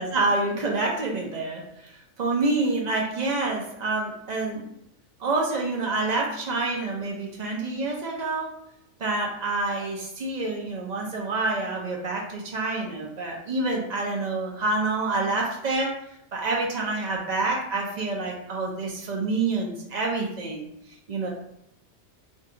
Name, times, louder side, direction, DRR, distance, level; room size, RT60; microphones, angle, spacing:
voice 1, 0.0-4.6 5.2-8.5 9.0-15.9 16.3-20.7 21.1-21.3, right 3 dB, 70° right, -1 dB, 0.4 m, -27 dB
2.6 x 2.2 x 3.7 m, 0.77 s
omnidirectional pair, 1.4 m